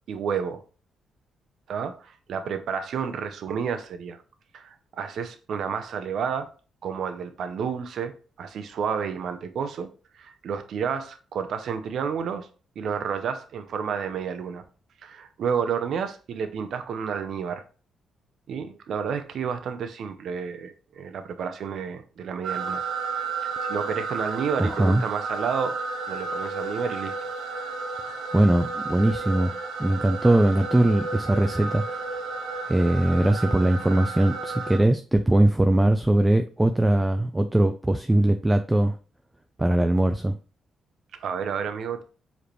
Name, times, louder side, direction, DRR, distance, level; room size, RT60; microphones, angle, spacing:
voice 1, 0.1-0.6 1.7-4.2 4.5-6.5 6.8-8.1 8.4-9.9 10.2-12.5 12.8-14.6 15.0-17.6 18.5-22.8 23.6-25.8 26.1-27.3 41.2-42.0, right 6 dB, 70° right, 0.6 m, -30 dB
sound 1, 22.4-34.8, right 4 dB, 85° right, 1.0 m, -32 dB
voice 2, 24.6-25.0 28.3-29.5 29.8-32.0 32.7-39.0 39.6-40.4, right 1 dB, 15° right, 0.4 m, -21 dB
4.8 x 3.3 x 3.1 m
cardioid pair, 85°, 0 cm